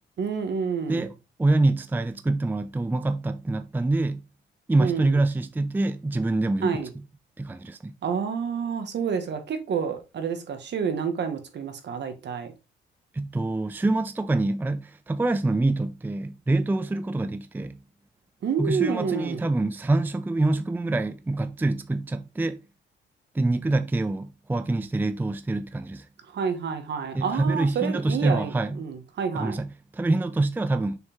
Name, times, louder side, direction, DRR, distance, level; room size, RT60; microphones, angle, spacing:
voice 1, 0.2-1.1 4.8-5.2 6.6-6.9 8.0-12.5 18.4-19.4 26.3-29.6, right 6 dB, 60° right, 1.6 m, -29 dB
voice 2, 1.4-4.2 4.7-6.8 7.4-7.9 13.1-17.8 18.6-22.6 23.3-26.1 27.1-28.8 29.3-31.0, right 2 dB, 10° right, 0.5 m, -25 dB
6.6 x 4.6 x 3.6 m
cardioid pair, 90°, 20 cm